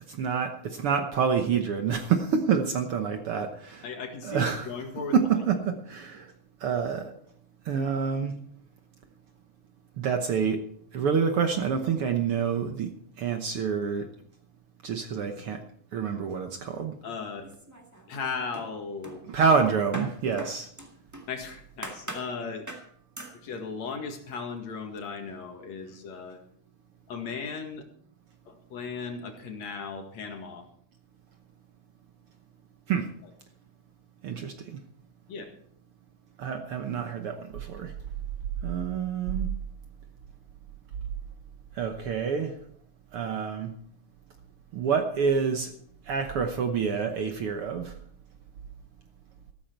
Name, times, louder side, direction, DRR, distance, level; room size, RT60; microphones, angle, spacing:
voice 1, 0.1-3.9 4.2-4.7 5.1-6.3 6.6-7.1 7.6-8.3 10.0-10.6 10.9-14.1 14.8-15.6 15.9-16.9 19.3-20.7 32.9-33.1 34.2-34.8 36.4-37.9 38.6-39.5 41.7-42.6 43.1-43.7 44.7-45.7 46.1-48.0, right 6 dB, 60° right, 6 dB, 1.6 m, -27 dB
voice 2, 3.8-5.1 17.0-17.5 18.1-19.2 21.3-22.7 23.3-26.4 27.1-27.8 28.5-30.7 35.3-35.5, left 5 dB, 65° left, 4 dB, 3.1 m, -36 dB
sound 1, 17.4-18.2 18.5-21.3 21.8-22.3 22.7-22.9 23.2-23.4, right 1 dB, 10° right, 1.3 m, -41 dB
14.5 x 13.5 x 4.6 m, 0.62 s
omnidirectional pair, 3.4 m